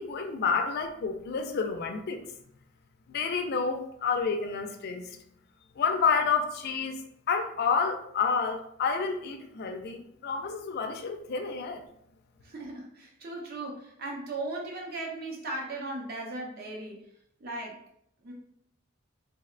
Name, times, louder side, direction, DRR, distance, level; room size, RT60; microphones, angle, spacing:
voice 1, 0.0-2.2 3.1-5.2 5.8-7.0 7.3-11.8, left 5 dB, 50° left, 5 dB, 0.3 m, -29 dB
voice 2, 12.4-17.0 17.4-17.8 18.2-18.3, right 2 dB, 50° right, -1 dB, 0.6 m, -37 dB
2.7 x 2.0 x 2.4 m, 0.72 s
head